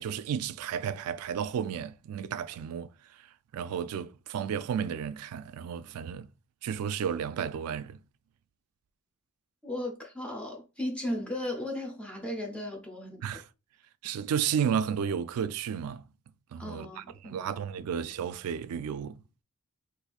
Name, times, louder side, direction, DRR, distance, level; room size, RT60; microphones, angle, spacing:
voice 1, 0.0-3.3 3.5-6.3 6.6-8.0 13.2-13.5 14.0-16.0 16.5-19.2, right 8 dB, 80° right, 0.3 m, -33 dB
voice 2, 9.6-13.4 16.6-17.5, left 1 dB, 5° left, 0.6 m, -36 dB
4.1 x 2.5 x 2.4 m
head